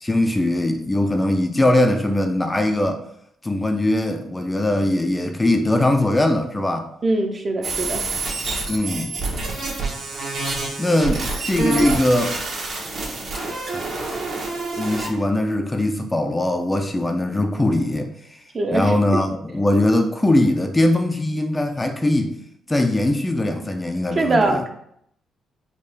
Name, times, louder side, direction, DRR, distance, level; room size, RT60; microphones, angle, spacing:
voice 1, 0.0-3.0 3.4-6.9 8.7-9.2 10.8-12.4 13.7-14.2 14.8-18.4 18.7-22.3 22.7-24.6, left 1 dB, 15° left, 5 dB, 0.4 m, -21 dB
voice 2, 7.0-8.0 18.5-19.0 24.2-24.7, right 2 dB, 35° right, 4 dB, 0.6 m, -22 dB
sound 1, 7.6-15.1, right 3 dB, 60° right, 1.1 m, -27 dB
4.3 x 2.4 x 3.3 m, 0.72 s
cardioid pair, 90°, 0 cm